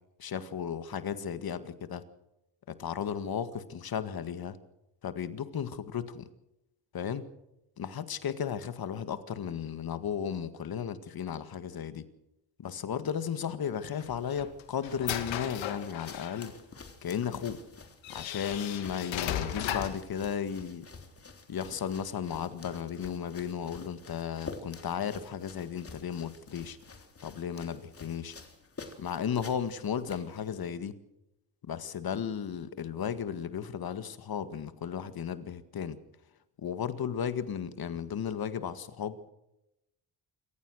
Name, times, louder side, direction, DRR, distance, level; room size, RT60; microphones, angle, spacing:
voice 1, 0.2-2.0 2.7-4.6 5.0-6.3 6.9-7.3 7.8-12.1 12.6-16.5 17.0-17.6 18.1-20.8 21.5-26.8 27.2-28.4 29.0-31.0 31.7-36.0 36.6-39.3, left 8 dB, 50° left, 11 dB, 1.9 m, -35 dB
sound 1, 13.7-30.7, left 4 dB, 30° left, 3.5 m, -49 dB
sound 2, 14.0-16.5 17.3-17.4 18.0-20.1, left 10 dB, 80° left, 2.4 m, -36 dB
26.5 x 15.0 x 6.4 m, 0.88 s
cardioid pair, 90°, 46 cm